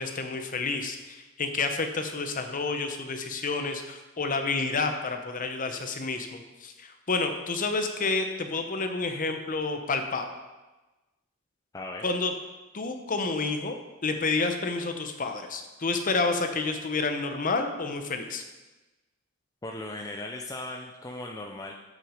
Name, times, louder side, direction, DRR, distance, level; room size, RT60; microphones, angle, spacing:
voice 1, 0.0-10.3 12.0-12.3 12.7-13.8 14.0-18.4, left 3 dB, 40° left, 6 dB, 0.8 m, -29 dB
voice 2, 11.7-12.0 19.6-21.7, left 2 dB, 15° left, 2 dB, 0.4 m, -37 dB
7.7 x 6.2 x 5.0 m, 1.1 s
head